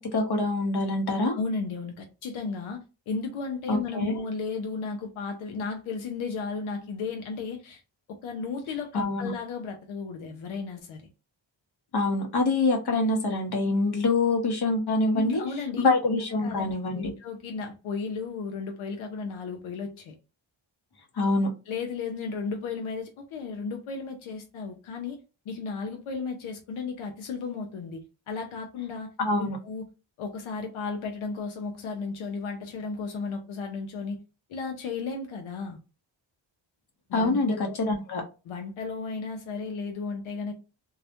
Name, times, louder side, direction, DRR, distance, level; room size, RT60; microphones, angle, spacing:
voice 1, 0.1-1.3 3.7-4.1 8.9-9.3 11.9-15.4 15.8-17.1 21.2-21.5 29.2-29.6 37.1-38.2, left 2 dB, 55° left, 0.8 m, -25 dB
voice 2, 1.3-7.8 8.1-11.1 15.1-15.9 16.4-20.1 21.7-25.2 25.5-29.1 29.4-29.9 30.2-34.2 34.5-35.8 37.1-38.0 38.5-40.5, left 4 dB, 90° left, 0.6 m, -34 dB
2.3 x 2.0 x 2.7 m
cardioid pair, 90°, 47 cm